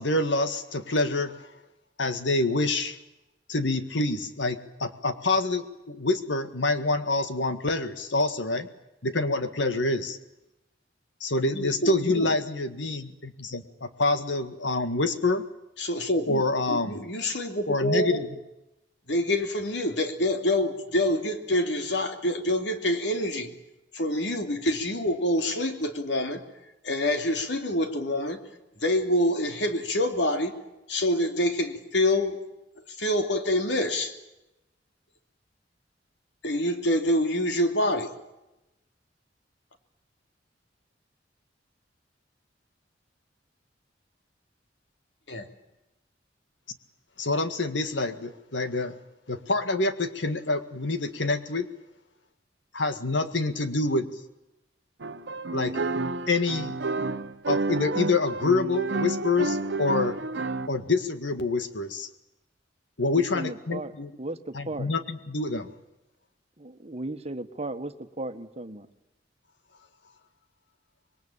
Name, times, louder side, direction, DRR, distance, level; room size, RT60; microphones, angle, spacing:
voice 1, 0.0-1.4 2.0-3.0 3.5-8.7 9.0-10.2 11.2-15.4 16.3-17.0 17.7-18.3 47.2-49.0 49.3-51.7 52.7-54.1 55.5-55.8 56.3-56.8 57.5-60.2 60.7-62.1 63.0-64.1 64.5-65.7, left 3 dB, 85° left, 10 dB, 1.9 m, -26 dB
voice 2, 11.5-12.3 15.8-18.2 19.1-23.5 23.9-26.4 26.8-28.4 28.8-30.5 30.9-32.4 32.9-34.2 36.4-38.1 45.3-45.5, left 1 dB, 70° left, 6 dB, 2.9 m, -26 dB
sound 1, 55.0-60.7, right 3 dB, 75° right, 0.9 m, -30 dB
voice 3, 63.2-64.9 66.6-68.9, right 2 dB, 35° right, 9 dB, 1.4 m, -36 dB
26.0 x 21.5 x 8.8 m, 0.95 s
head